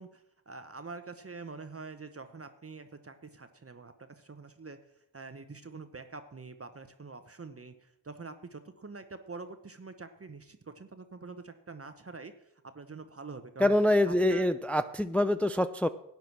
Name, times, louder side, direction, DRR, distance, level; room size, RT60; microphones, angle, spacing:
voice 1, 0.0-13.8 14.1-14.5, right 4 dB, 30° right, 9 dB, 1.0 m, -46 dB
voice 2, 13.6-15.9, left 1 dB, 5° left, 10 dB, 0.5 m, -25 dB
11.5 x 9.2 x 6.0 m, 0.80 s
cardioid pair, 55°, 44 cm